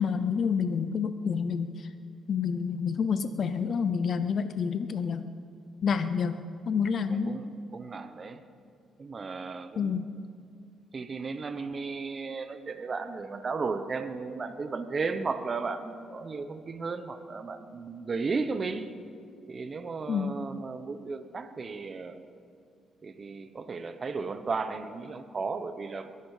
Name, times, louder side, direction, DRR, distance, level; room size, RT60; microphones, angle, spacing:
voice 1, 0.0-1.9 2.3-5.2 5.8-6.4 6.7-7.4 9.8-10.0 20.1-20.3, left 6 dB, 55° left, 10 dB, 0.7 m, -28 dB
voice 2, 7.3-8.4 9.0-10.0 10.9-18.9 19.5-22.2 23.0-26.1, right 4 dB, 40° right, 9 dB, 1.0 m, -34 dB
22.5 x 11.5 x 5.0 m, 2.4 s
cardioid pair, 90°, 0 cm